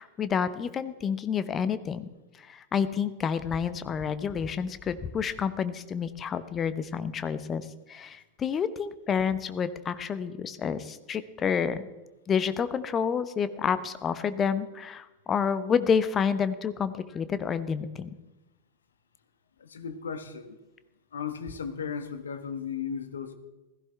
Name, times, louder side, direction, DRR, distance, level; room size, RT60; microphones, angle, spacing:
voice 1, 0.0-2.1 2.4-11.9 12.3-18.1, left 7 dB, 25° left, 13 dB, 0.8 m, -29 dB
voice 2, 19.6-20.6 21.1-23.4, left 6 dB, 70° left, 10 dB, 1.3 m, -35 dB
16.0 x 14.5 x 3.4 m, 1.1 s
figure-of-eight pair, 90°, 0 cm